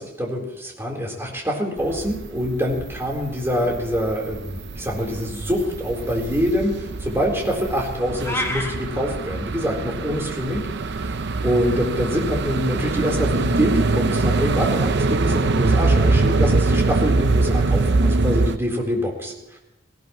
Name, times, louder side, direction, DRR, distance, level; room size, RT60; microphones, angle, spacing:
voice 1, 0.0-19.6, equal, 15° right, -1 dB, 3.9 m, -25 dB
sound 1, 1.8-18.6, right 3 dB, 65° right, 0.7 m, -23 dB
sound 2, 8.2-8.7, left 1 dB, 15° left, 2.2 m, -26 dB
19.5 x 18.5 x 3.1 m, 0.99 s
head